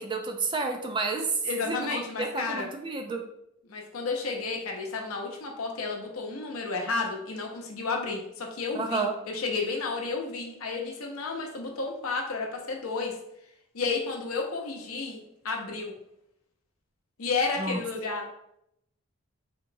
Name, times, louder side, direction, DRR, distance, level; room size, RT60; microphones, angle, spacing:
voice 1, 0.0-1.3 1.6-3.2 8.7-9.1 17.6-17.8, right 3 dB, 25° right, 4 dB, 0.3 m, -31 dB
voice 2, 1.4-2.7 3.7-13.1 13.7-15.9 17.2-18.3, left 4 dB, 80° left, 2 dB, 0.7 m, -32 dB
3.7 x 2.9 x 2.6 m, 0.77 s
head